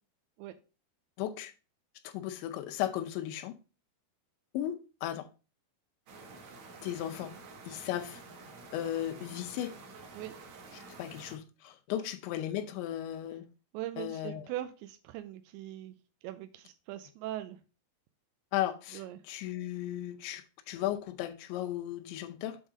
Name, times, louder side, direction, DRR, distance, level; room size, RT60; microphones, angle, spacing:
voice 1, 1.2-1.5 2.0-3.5 4.5-5.3 6.8-7.3 7.6-8.2 8.7-9.7 10.7-13.5 14.0-14.5 18.5-22.6, left 12 dB, 85° left, 3.0 m, -36 dB
sound 1, 6.1-11.4, right 3 dB, 70° right, 1.8 m, -50 dB
voice 2, 13.7-16.0 16.2-17.6 18.9-19.2, right 14 dB, 90° right, 2.9 m, -41 dB
8.0 x 3.7 x 4.8 m
omnidirectional pair, 5.1 m